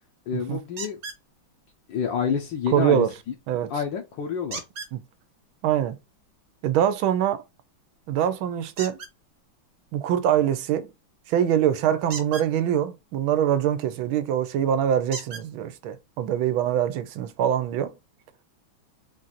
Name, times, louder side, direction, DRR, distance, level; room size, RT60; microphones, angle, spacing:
voice 1, 0.3-1.0 1.9-3.1 3.7-4.6, left 7 dB, 70° left, 1.4 m, -28 dB
sound 1, 0.8-1.2 4.5-4.9 8.8-9.1 12.0-12.5 14.1-14.2 15.1-15.5 16.5-16.6 17.0-17.1, right 4 dB, 55° right, 1.7 m, -36 dB
voice 2, 2.7-3.1 3.5-3.7 4.9-5.0 5.6-6.0 6.6-7.4 8.1-9.0 9.9-10.9 11.3-17.9, right 10 dB, 85° right, 1.5 m, -24 dB
4.5 x 2.5 x 4.0 m
omnidirectional pair, 2.2 m